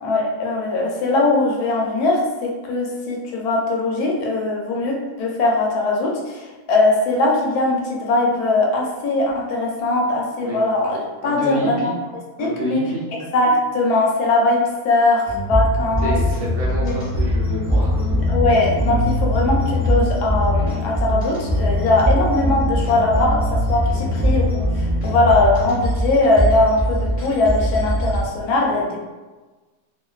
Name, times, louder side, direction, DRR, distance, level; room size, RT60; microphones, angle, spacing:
voice 1, 0.0-11.0 11.2-11.8 12.4-12.8 13.3-16.2 16.8-16.9 18.3-29.0, left 2 dB, 80° left, -1 dB, 1.1 m, -20 dB
voice 2, 11.2-11.9 12.4-13.0 16.0-18.0 23.8-24.2 28.6-28.7, equal, 65° right, -6 dB, 0.8 m, -28 dB
sound 1, 15.3-28.2, equal, 5° left, 1.1 m, -21 dB
2.4 x 2.4 x 2.3 m, 1.2 s
omnidirectional pair, 1.6 m